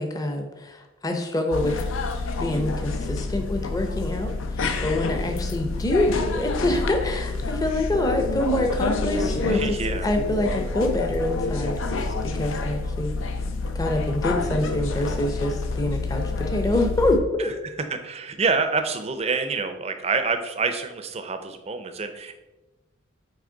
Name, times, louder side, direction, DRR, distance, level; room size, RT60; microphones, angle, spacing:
voice 1, 0.0-1.9 2.4-4.3 4.8-9.8 10.0-13.1 13.7-17.5, left 1 dB, 20° left, 3 dB, 0.6 m, -26 dB
sound 1, 1.5-17.2, left 3 dB, 75° left, 0.6 m, -28 dB
voice 2, 9.5-10.1 17.4-22.4, right 4 dB, 30° right, 8 dB, 0.5 m, -27 dB
8.6 x 3.3 x 3.8 m, 1.1 s
head